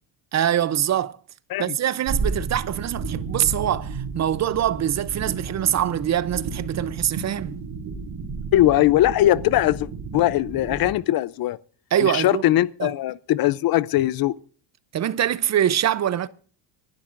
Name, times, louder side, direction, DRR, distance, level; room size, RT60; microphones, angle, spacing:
voice 1, 0.3-1.1 1.6-7.6 11.9-12.4 12.8-12.9 14.9-16.3, right 10 dB, 35° right, 0.5 m, -23 dB
sound 1, 2.0-10.9, right 4 dB, 55° right, 3.6 m, -32 dB
voice 2, 8.5-9.9 10.1-11.6 12.0-14.3, left 14 dB, 45° left, 0.5 m, -20 dB
25.0 x 11.5 x 2.5 m
cardioid pair, 135°, 49 cm